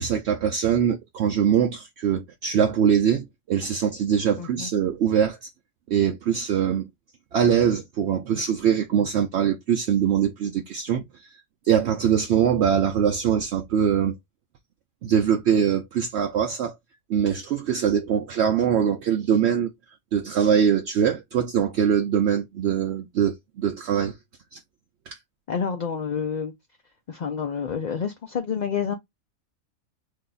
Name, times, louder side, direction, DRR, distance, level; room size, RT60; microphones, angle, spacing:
voice 1, 0.0-5.5 5.9-6.9 7.3-11.3 11.6-14.2 15.0-16.7 17.1-19.7 20.1-24.1 24.5-24.6 25.1-25.2, right 8 dB, 65° right, 0.8 m, -23 dB
voice 2, 4.4-4.7 25.5-26.5 27.1-28.9, left 6 dB, 55° left, 0.5 m, -28 dB
3.3 x 2.7 x 3.7 m
omnidirectional pair, 1.3 m